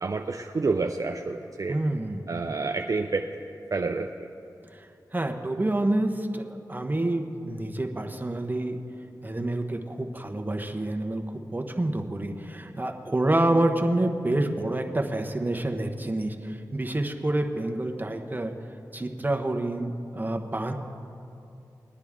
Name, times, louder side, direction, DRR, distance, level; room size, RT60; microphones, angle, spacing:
voice 1, 0.0-1.8 2.3-3.3 3.7-4.3, right 3 dB, 50° right, 5 dB, 0.5 m, -29 dB
voice 2, 1.7-2.2 4.7-4.8 5.1-8.8 9.2-18.6 18.9-20.7, right 1 dB, 25° right, 3 dB, 1.2 m, -28 dB
20.0 x 9.9 x 3.7 m, 2.7 s
cardioid pair, 45°, 7 cm